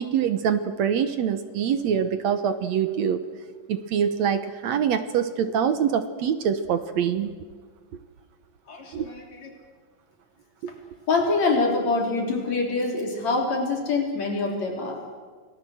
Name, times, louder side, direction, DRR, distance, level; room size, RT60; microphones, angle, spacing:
voice 1, 0.0-3.2 3.7-7.3 8.9-9.1 10.6-10.7, right 8 dB, 65° right, 10 dB, 1.9 m, -24 dB
voice 2, 8.7-9.5 11.1-15.0, left 3 dB, 55° left, 1 dB, 4.6 m, -25 dB
28.5 x 19.0 x 7.8 m, 1.5 s
omnidirectional pair, 3.9 m